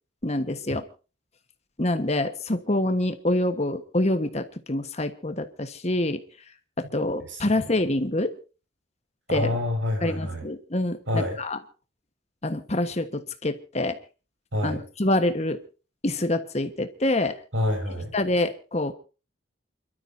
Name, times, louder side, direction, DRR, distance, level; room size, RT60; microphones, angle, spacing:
voice 1, 0.2-0.8 1.8-6.2 6.8-8.3 9.3-9.6 10.0-11.6 12.4-14.0 14.6-15.6 16.0-17.3 18.1-18.9, left 1 dB, 35° left, 8 dB, 1.3 m, -26 dB
voice 2, 9.3-10.4 11.1-11.4 14.5-14.8 17.5-18.1, left 1 dB, 75° right, 4 dB, 5.6 m, -27 dB
29.0 x 13.0 x 2.7 m, 0.34 s
head